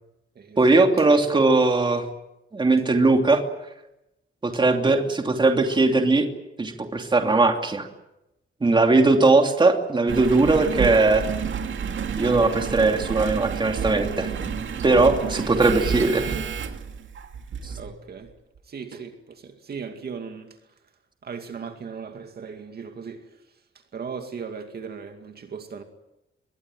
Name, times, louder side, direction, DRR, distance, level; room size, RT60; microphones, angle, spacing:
voice 1, 0.6-2.0 2.5-3.4 4.4-6.3 6.6-7.9 8.6-11.3 12.2-14.6 14.8-16.4 17.6-17.7, right 3 dB, 20° right, 2.8 m, -19 dB
Engine, 10.1-17.9 18.6-18.7, right 6 dB, 65° right, 2.3 m, -30 dB
voice 2, 17.8-18.3 18.7-20.6 21.2-23.3 23.9-25.8, right 6 dB, 50° right, 2.3 m, -37 dB
25.5 x 22.5 x 9.2 m
wide cardioid pair, 170°, 21 cm